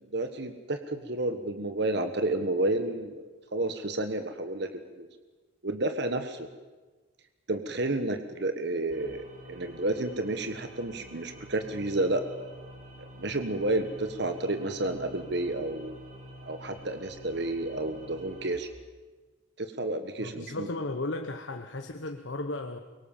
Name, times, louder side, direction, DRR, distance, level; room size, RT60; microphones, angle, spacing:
voice 1, 0.1-5.1 5.6-6.5 7.5-12.2 13.0-16.0 16.4-18.7 19.6-20.7, right 2 dB, 55° right, 8 dB, 1.4 m, -31 dB
sound 1, 8.9-18.6, equal, 40° right, 5.1 m, -48 dB
voice 2, 20.2-22.8, left 2 dB, 65° left, 6 dB, 1.2 m, -35 dB
24.0 x 23.0 x 7.3 m, 1.3 s
head